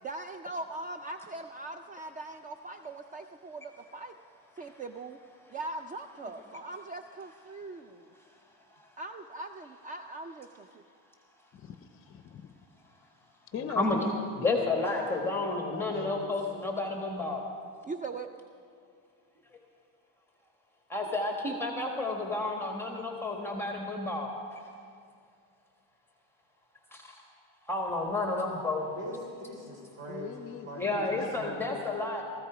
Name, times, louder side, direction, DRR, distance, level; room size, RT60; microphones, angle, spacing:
voice 1, 0.0-4.1 4.6-5.2 5.5-8.1 9.0-10.8 17.8-18.3, right 2 dB, 20° right, 8 dB, 0.4 m, -41 dB
voice 2, 11.5-12.6 13.5-14.3 14.6-16.2 30.1-31.4, left 7 dB, 35° left, 9 dB, 0.6 m, -42 dB
voice 3, 14.4-17.4 20.9-24.3 26.9-27.0 27.7-28.8 30.8-32.2, left 2 dB, 5° left, 1 dB, 1.3 m, -31 dB
voice 4, 15.9-16.3 29.0-30.3 30.6-31.7, right 1 dB, 40° right, 0 dB, 3.6 m, -42 dB
18.0 x 14.5 x 4.9 m, 2.3 s
cardioid pair, 130°, 39 cm